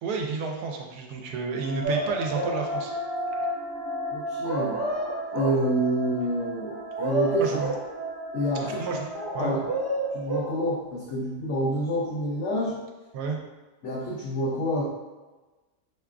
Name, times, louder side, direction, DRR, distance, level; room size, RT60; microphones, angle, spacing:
voice 1, 0.0-2.9 3.3-3.5 7.4-7.7 8.8-9.1 9.3-9.6 13.1-13.4, right 4 dB, 80° right, 1 dB, 1.1 m, -31 dB
sound 1, 1.3-10.5, right 1 dB, 25° right, 1.0 m, -35 dB
sound 2, 1.8-2.6 4.4-5.6 6.7-7.9 9.1-10.6, right 1 dB, 60° right, 1.3 m, -29 dB
voice 2, 4.1-4.8 5.3-7.4 8.3-8.8 9.4-9.6 10.1-12.8 13.8-14.8, equal, 70° left, -3 dB, 0.7 m, -27 dB
4.9 x 2.3 x 2.3 m, 1.2 s
omnidirectional pair, 1.7 m